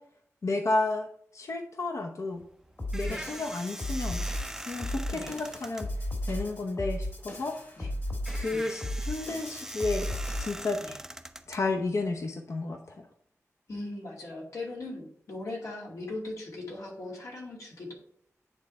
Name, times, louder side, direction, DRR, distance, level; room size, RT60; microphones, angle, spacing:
voice 1, 0.4-1.1 1.3-2.4 2.9-4.3 4.7-5.9 6.2-7.5 8.3-10.1 10.4-10.8 11.5-13.0, left 3 dB, 70° left, 3 dB, 0.8 m, -31 dB
sound 1, 2.3-12.3, right 1 dB, 10° right, 0.5 m, -43 dB
sound 2, 2.8-10.7, left 1 dB, 45° left, 1.7 m, -35 dB
voice 2, 13.7-17.9, left 2 dB, 85° left, -2 dB, 2.4 m, -39 dB
9.2 x 3.6 x 4.4 m, 0.65 s
wide cardioid pair, 75°, 5 cm